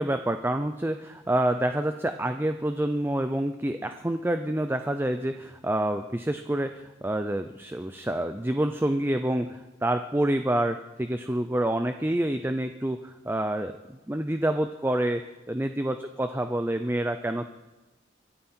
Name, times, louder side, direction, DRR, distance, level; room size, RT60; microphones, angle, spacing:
voice 1, 0.0-15.2 15.5-17.5, right 1 dB, 10° right, 8 dB, 0.5 m, -27 dB
24.5 x 13.0 x 4.4 m, 1.1 s
head